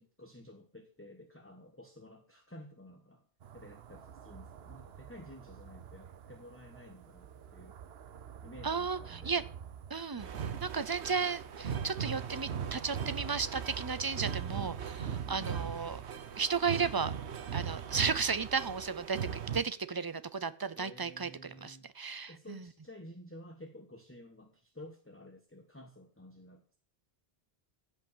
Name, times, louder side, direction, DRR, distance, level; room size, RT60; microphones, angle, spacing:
voice 1, 0.0-3.3 3.5-7.8 8.4-9.5 10.1-10.3 13.0-13.1 15.3-15.7 20.7-21.9 22.3-26.8, left 1 dB, 10° left, 4 dB, 1.3 m, -52 dB
sound 1, 3.4-18.1, right 8 dB, 70° right, 1.0 m, -49 dB
voice 2, 8.6-9.4 9.9-10.3 10.6-16.0 16.4-17.1 17.5-19.2 19.5-22.6, right 5 dB, 25° right, 15 dB, 0.6 m, -34 dB
sound 2, 10.2-19.6, right 7 dB, 90° right, 1.2 m, -39 dB
15.5 x 5.5 x 7.4 m, 0.43 s
omnidirectional pair, 1.1 m